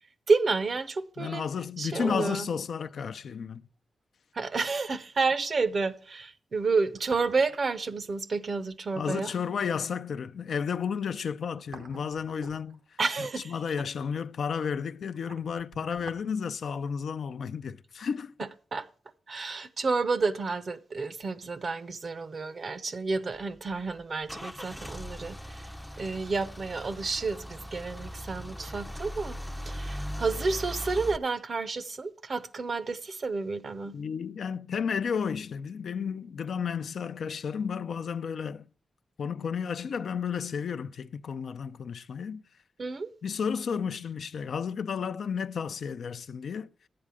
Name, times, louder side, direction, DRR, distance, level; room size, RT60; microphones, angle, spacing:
voice 1, 0.3-1.4 1.8-2.5 4.3-9.3 13.0-13.9 18.4-18.8 19.3-25.7 26.0-29.4 29.7-34.0 42.8-43.1, right 4 dB, 55° right, 0.7 m, -30 dB
voice 2, 1.2-3.6 9.0-12.8 13.2-18.3 33.9-38.7 39.2-42.4 43.2-46.7, left 6 dB, 80° left, 0.4 m, -32 dB
sound 1, 3.6-3.7 6.7-7.8 8.0-8.1 11.3-13.0 14.8-16.3 16.6-16.7, right 4 dB, 80° right, 1.1 m, -49 dB
Car / Engine starting / Idling, 23.3-31.2, equal, 5° left, 0.5 m, -39 dB
11.5 x 8.6 x 4.8 m
cardioid pair, 70°, 0 cm